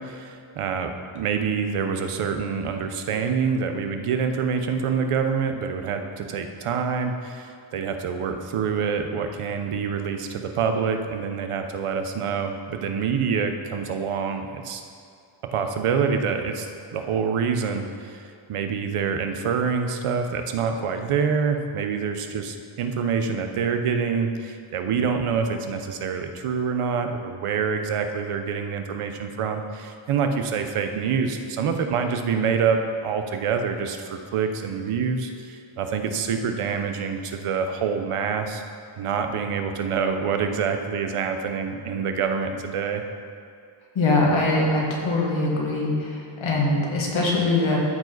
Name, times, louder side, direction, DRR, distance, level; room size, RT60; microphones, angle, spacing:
voice 1, 0.0-14.8 15.5-18.2 18.5-38.6 39.0-43.0, right 6 dB, 85° right, 6 dB, 0.9 m, -26 dB
voice 2, 44.0-47.8, left 2 dB, 65° left, -3 dB, 1.8 m, -22 dB
13.5 x 4.9 x 4.0 m, 2.4 s
wide cardioid pair, 155°, 50 cm